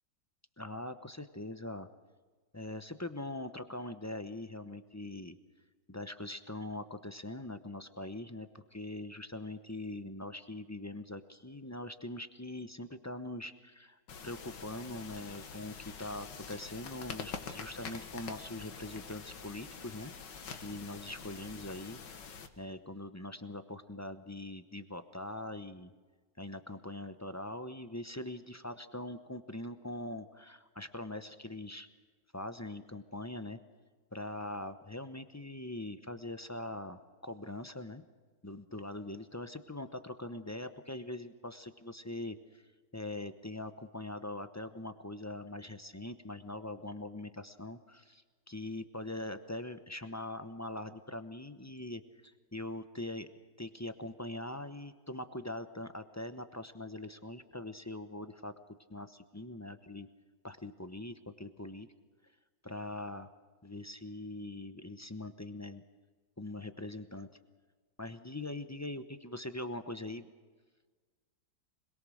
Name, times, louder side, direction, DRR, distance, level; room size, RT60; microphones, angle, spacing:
voice 1, 0.6-1.9 2.5-5.4 5.9-14.0 14.2-20.1 20.5-22.0 22.6-25.9 26.4-31.9 32.3-33.6 34.1-38.0 38.4-42.6 42.9-53.3 53.6-58.5 58.9-60.1 60.4-61.9 62.6-63.3 63.6-65.8 66.4-67.3 68.0-70.3, left 1 dB, 15° left, 9 dB, 0.5 m, -42 dB
sound 1, 14.1-22.5, left 6 dB, 90° left, 2.1 m, -46 dB
26.0 x 21.5 x 6.4 m, 1.4 s
omnidirectional pair, 1.9 m